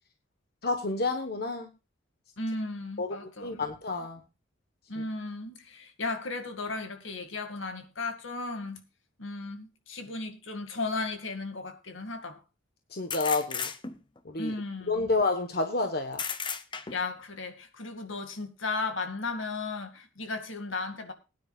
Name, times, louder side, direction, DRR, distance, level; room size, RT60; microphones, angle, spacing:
voice 1, 0.6-1.7 3.0-3.2 3.4-4.2 12.9-13.7 14.2-14.5 14.9-16.2, left 3 dB, 50° left, 6 dB, 1.2 m, -29 dB
voice 2, 2.4-3.7 4.0-4.1 4.9-8.8 9.2-12.4 14.4-15.1 16.9-21.1, left 3 dB, 75° left, 7 dB, 2.2 m, -35 dB
sound 1, 10.7-10.8 13.1-14.2 16.1-17.2, left 6 dB, 25° left, 0.7 m, -34 dB
20.5 x 9.8 x 2.4 m, 0.29 s
head